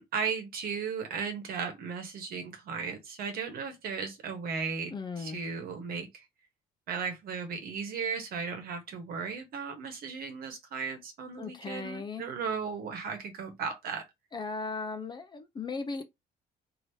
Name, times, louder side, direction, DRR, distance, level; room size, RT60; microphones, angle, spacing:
voice 1, 0.0-6.1 6.9-14.0, right 5 dB, 60° right, 1.1 m, -36 dB
voice 2, 4.9-5.4 11.4-12.3 14.3-16.0, left 4 dB, 25° left, 0.5 m, -37 dB
3.2 x 2.8 x 2.8 m
cardioid pair, 110°, 17 cm